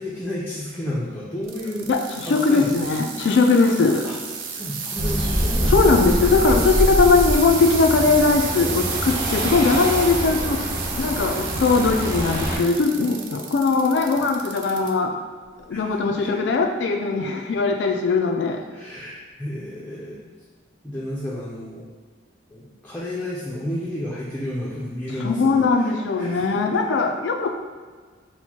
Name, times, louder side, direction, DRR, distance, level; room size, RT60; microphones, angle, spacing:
voice 1, 0.0-1.9 2.3-2.7 4.0-4.2 4.5-5.8 14.1-14.2 15.7-15.8 16.2-16.5 18.7-20.2 20.8-21.8 22.5-26.5, left 1 dB, 10° left, -7 dB, 0.5 m, -31 dB
sound 1, 1.4-14.9 15.4-15.9 16.5-16.6, right 5 dB, 90° right, 0.5 m, -32 dB
voice 2, 1.9-4.0 5.7-15.1 15.7-18.6 25.2-27.5, left 4 dB, 70° left, 3 dB, 0.4 m, -20 dB
sound 2, 5.0-12.6, equal, 20° right, 0.9 m, -25 dB
4.4 x 2.1 x 4.2 m, 1.5 s
head